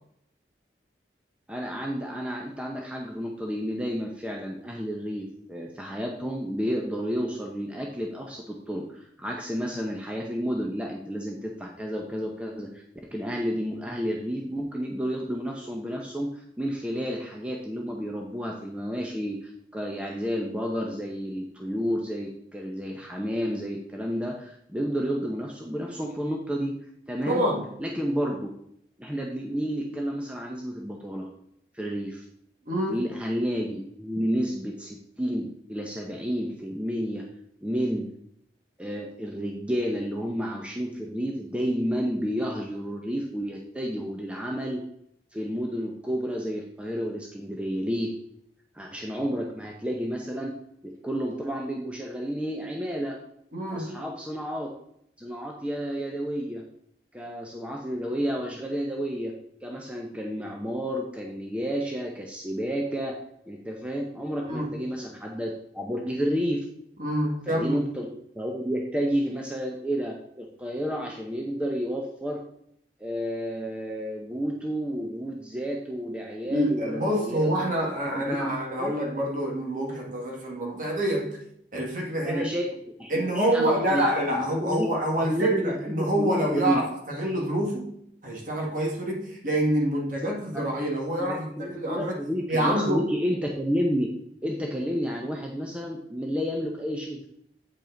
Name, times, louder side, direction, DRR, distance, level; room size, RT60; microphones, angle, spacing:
voice 1, 1.5-12.8 13.1-26.7 27.1-27.4 27.8-28.5 29.0-31.3 31.7-32.2 32.9-37.3 37.6-38.1 38.8-44.8 45.3-48.1 48.7-50.6 50.8-53.2 53.7-54.7 55.2-56.6 57.1-59.3 59.6-63.2 63.5-66.7 67.5-68.1 68.3-72.4 73.0-77.5 78.0-78.9 82.2-82.7 83.0-84.9 85.2-86.8 90.2-90.6 91.2-94.1 94.4-97.3, equal, 5° right, 0.7 m, -31 dB
voice 2, 27.2-27.7 32.7-33.1 53.5-54.1 64.5-64.8 67.0-67.8 76.4-81.4 81.7-82.5 83.1-88.0 88.2-92.2 92.5-93.1, right 1 dB, 45° right, 1.8 m, -27 dB
8.8 x 5.4 x 3.9 m
head